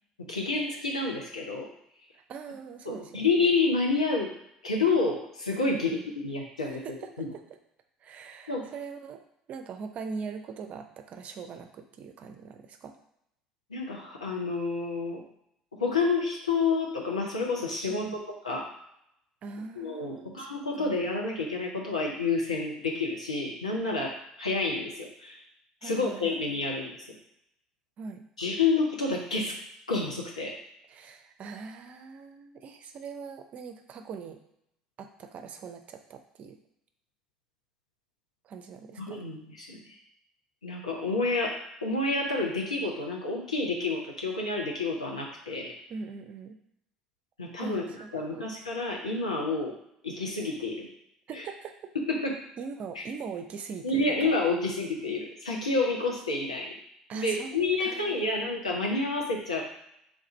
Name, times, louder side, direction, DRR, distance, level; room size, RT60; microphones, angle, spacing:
voice 1, 0.2-1.7 2.9-4.3 4.6-6.8 7.2-7.3 8.5-8.7 13.7-15.2 15.8-18.7 19.8-25.4 25.8-27.0 28.4-29.6 29.9-30.6 39.0-39.9 40.6-45.7 47.4-47.8 48.1-49.7 50.0-50.9 51.3-51.4 52.1-52.4 53.8-56.8 57.1-59.6, left 3 dB, 80° left, -1 dB, 0.7 m, -29 dB
voice 2, 2.1-3.3 5.7-6.1 6.7-7.4 8.0-9.2 9.5-13.0 17.9-18.2 19.4-20.5 20.7-20.9 25.8-26.4 28.0-28.3 30.9-34.4 35.0-36.6 38.4-39.2 45.9-46.5 47.6-48.5 51.3-51.9 52.6-54.3 57.1-58.3, right 5 dB, 45° right, 7 dB, 0.5 m, -41 dB
3.6 x 2.4 x 4.1 m, 0.78 s
figure-of-eight pair, 60°, 3 cm